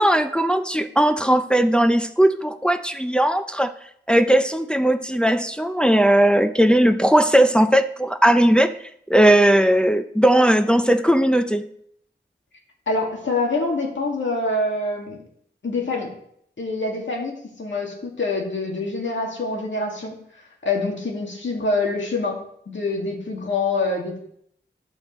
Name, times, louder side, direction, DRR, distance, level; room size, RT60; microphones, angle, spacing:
voice 1, 0.0-3.7 4.1-8.7 9.1-11.7, right 1 dB, 5° left, 8 dB, 0.5 m, -18 dB
voice 2, 12.9-15.2 15.6-16.1 16.6-20.2 20.6-24.2, left 3 dB, 85° left, 0 dB, 2.1 m, -25 dB
10.5 x 7.2 x 4.3 m, 0.68 s
wide cardioid pair, 75°, 19 cm